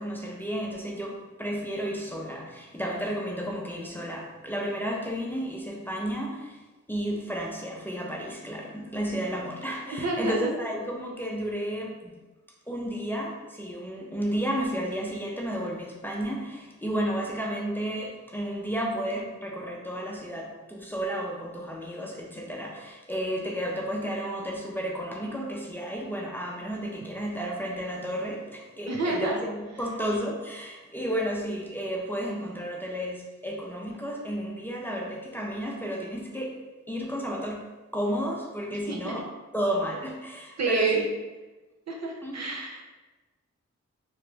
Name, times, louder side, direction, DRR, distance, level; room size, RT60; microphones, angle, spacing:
voice 1, 0.0-12.2 12.7-36.6 36.9-37.7 37.9-39.3 39.5-41.1 42.2-42.5, equal, 5° left, -2 dB, 0.5 m, -32 dB
voice 2, 9.9-10.4 28.9-29.4 38.9-39.2 40.6-41.0 41.9-42.9, right 3 dB, 65° right, 0 dB, 0.7 m, -28 dB
3.0 x 2.3 x 3.2 m, 1.2 s
cardioid pair, 65°, 29 cm